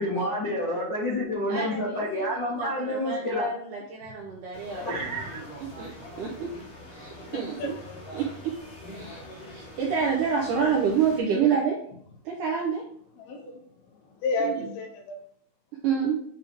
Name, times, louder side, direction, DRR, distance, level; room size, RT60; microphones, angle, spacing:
voice 1, 0.0-3.5 4.7-5.4, left 1 dB, 65° left, -6 dB, 1.1 m, -29 dB
voice 2, 1.5-5.2 5.8-5.9 6.2-6.5 6.9-7.8 8.1-8.5 8.9-9.2 9.5-11.8 12.3-12.8 14.4-14.7 15.8-16.2, right 6 dB, 75° right, -1 dB, 1.9 m, -28 dB
sound 1, 4.5-11.2, left 1 dB, 45° left, 2.7 m, -43 dB
voice 3, 7.6-8.0 13.2-13.6 13.9-15.2, left 2 dB, 80° left, 3 dB, 2.7 m, -32 dB
9.2 x 3.4 x 3.4 m, 0.63 s
omnidirectional pair, 4.6 m